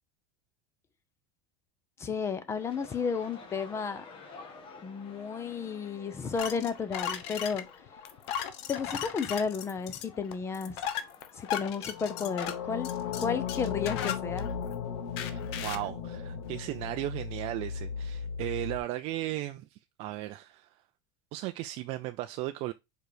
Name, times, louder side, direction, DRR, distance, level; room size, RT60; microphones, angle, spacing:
voice 1, 2.0-4.0 4.8-7.6 8.7-10.8 11.4-12.9 13.2-14.5, left 6 dB, 20° left, 0.7 m, -33 dB
sound 1, 2.5-13.1, left 3 dB, 35° left, 1.5 m, -52 dB
sound 2, 5.4-6.7 11.8-18.8, left 7 dB, 90° left, 1.2 m, -36 dB
sound 3, 6.4-14.7 15.2-15.9, left 9 dB, 65° left, 0.8 m, -37 dB
voice 2, 15.2-20.7 21.3-22.7, right 16 dB, 40° right, 0.4 m, -36 dB
4.6 x 4.6 x 4.9 m
supercardioid pair, 155°, 15 cm